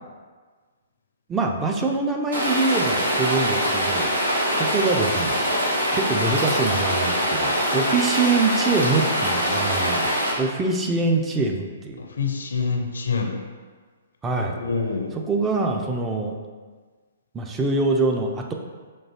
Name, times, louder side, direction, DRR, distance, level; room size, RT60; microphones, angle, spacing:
voice 1, 1.3-4.1 4.5-5.4 5.9-12.0 14.2-14.6 15.3-16.4 17.3-18.5, right 3 dB, 15° right, 1 dB, 0.3 m, -24 dB
Rain, 2.3-10.3, equal, 75° right, 0.9 m, -23 dB
voice 2, 12.0-13.4 14.5-15.2, left 5 dB, 70° left, 3 dB, 0.4 m, -26 dB
4.6 x 2.5 x 2.8 m, 1.4 s
figure-of-eight pair, 120°, 0 cm